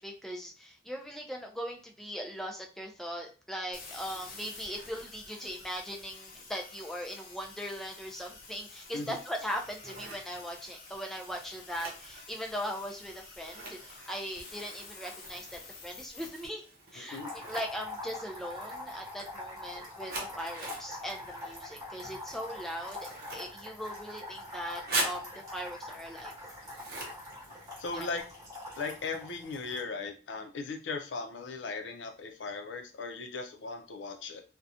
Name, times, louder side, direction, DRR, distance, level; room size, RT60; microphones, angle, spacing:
voice 1, 0.0-16.7 16.9-26.4 27.9-28.1, equal, ahead, 1 dB, 0.3 m, -39 dB
sound 1, 3.7-16.5, left 3 dB, 50° left, 0.7 m, -50 dB
Scissors, 9.4-28.2, right 2 dB, 55° right, 0.7 m, -43 dB
voice 2, 17.1-17.5 27.8-28.2 28.8-34.4, left 4 dB, 85° left, 4 dB, 0.5 m, -38 dB
sound 2, 17.1-29.8, left 2 dB, 20° right, 1.2 m, -44 dB
2.7 x 2.2 x 2.4 m, 0.35 s
head